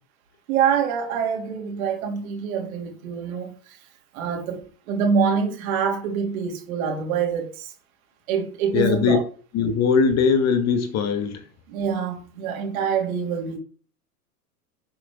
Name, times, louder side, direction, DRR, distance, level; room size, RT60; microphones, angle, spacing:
voice 1, 0.5-3.8 4.1-7.7 8.3-9.2 11.7-13.6, right 6 dB, 60° right, 3.1 m, -25 dB
voice 2, 8.7-9.2 9.5-11.4, left 6 dB, 35° left, 1.8 m, -20 dB
10.5 x 7.8 x 3.8 m
hypercardioid pair, 110°, 47 cm